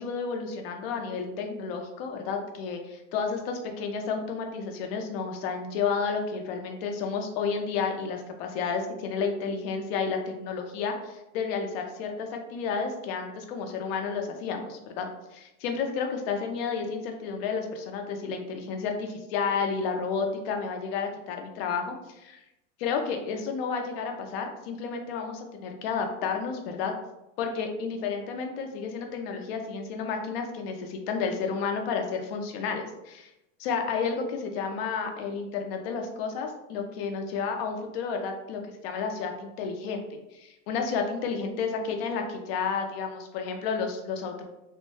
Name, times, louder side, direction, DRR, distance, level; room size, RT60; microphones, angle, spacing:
voice 1, 0.0-15.1 15.3-22.4 22.8-26.9 27.4-33.3 33.6-44.5, left 5 dB, 50° left, 4 dB, 0.5 m, -31 dB
3.1 x 2.1 x 3.1 m, 0.92 s
supercardioid pair, 160°, 38 cm